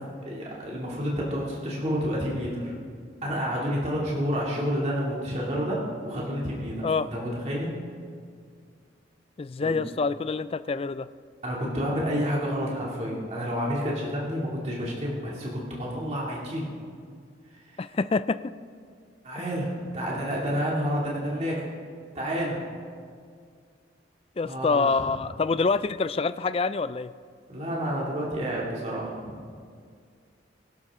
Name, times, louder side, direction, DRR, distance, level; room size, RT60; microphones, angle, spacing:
voice 1, 0.2-2.7 3.2-7.8 9.6-9.8 11.4-16.7 19.2-21.7 22.1-22.6 24.4-25.0 27.5-29.4, equal, 35° right, -4 dB, 2.5 m, -29 dB
voice 2, 9.4-11.1 17.8-18.4 19.4-19.5 24.4-27.1, left 4 dB, 30° left, 14 dB, 0.3 m, -26 dB
22.5 x 12.0 x 3.7 m, 2.1 s
head